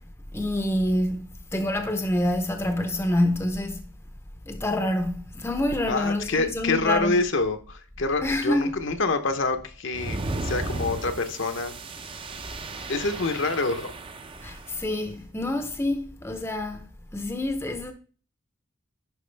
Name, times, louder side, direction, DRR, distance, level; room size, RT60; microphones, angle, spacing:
voice 1, 0.3-3.8 4.4-7.1 8.2-8.8 14.4-16.9 17.1-17.9, left 1 dB, 10° left, 0.6 m, -27 dB
voice 2, 5.9-11.7 12.9-13.9, left 3 dB, 60° left, 0.8 m, -26 dB
sound 1, 9.9-14.8, right 2 dB, 25° right, 0.5 m, -35 dB
10.5 x 4.7 x 3.3 m
head